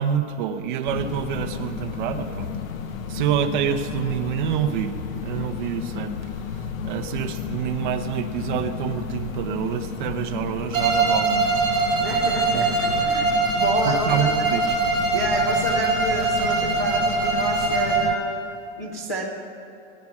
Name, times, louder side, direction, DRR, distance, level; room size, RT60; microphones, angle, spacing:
voice 1, 0.0-2.5 3.1-5.0 5.2-6.2 6.8-11.6 12.5-13.0 13.8-14.6, right 9 dB, 40° right, 8 dB, 0.8 m, -27 dB
sound 1, 0.9-18.2, left 7 dB, 90° left, 1.2 m, -32 dB
Bowed string instrument, 10.7-18.2, right 4 dB, 10° right, 4.1 m, -22 dB
voice 2, 12.0-14.5 15.1-18.4 18.8-19.3, right 1 dB, 15° left, -2 dB, 0.3 m, -30 dB
18.5 x 9.8 x 6.0 m, 2.8 s
supercardioid pair, 170°, 40 cm